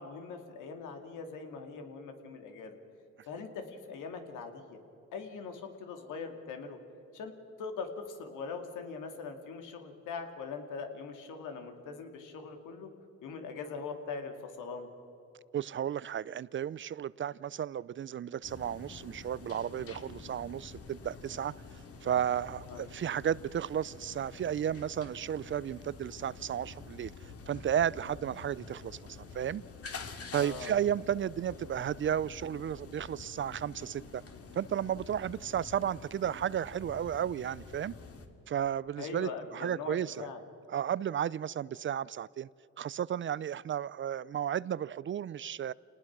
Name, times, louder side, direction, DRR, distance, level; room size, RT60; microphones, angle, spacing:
voice 1, 0.0-2.8 3.3-4.8 5.1-6.8 7.1-12.9 13.2-14.9 22.7-22.8 30.3-30.7 39.0-40.4, left 5 dB, 85° left, 2.5 m, -42 dB
voice 2, 15.5-21.5 22.0-27.1 27.5-29.0 29.3-29.6 30.3-34.2 34.5-37.9 38.5-40.3 40.7-42.5 42.8-45.7, right 9 dB, 40° right, 0.4 m, -33 dB
sound 1, 18.4-38.3, left 4 dB, 50° left, 2.2 m, -48 dB
27.0 x 19.5 x 6.1 m
cardioid pair, 90°, 30 cm